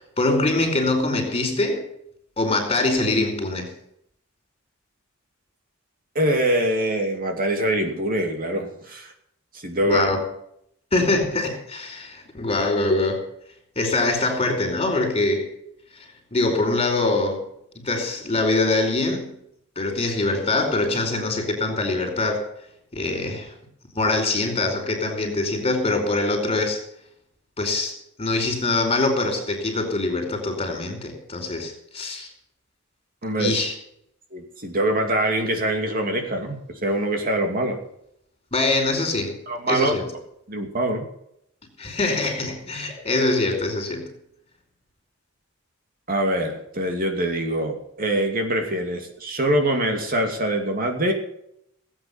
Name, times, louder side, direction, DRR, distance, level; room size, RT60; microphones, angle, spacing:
voice 1, 0.2-1.8 2.4-3.7 9.8-10.3 10.9-13.2 13.7-15.5 15.9-17.5 17.8-19.3 19.7-22.4 22.9-23.5 23.9-26.8 27.6-32.3 33.4-33.7 38.5-39.4 39.7-40.1 41.8-44.1, left 2 dB, 30° left, 3 dB, 4.9 m, -23 dB
voice 2, 6.1-9.1 9.5-10.0 33.2-33.6 34.3-37.8 39.5-39.9 40.5-41.0 46.1-51.1, right 1 dB, 45° right, 3 dB, 2.6 m, -24 dB
18.0 x 9.0 x 7.1 m, 0.72 s
head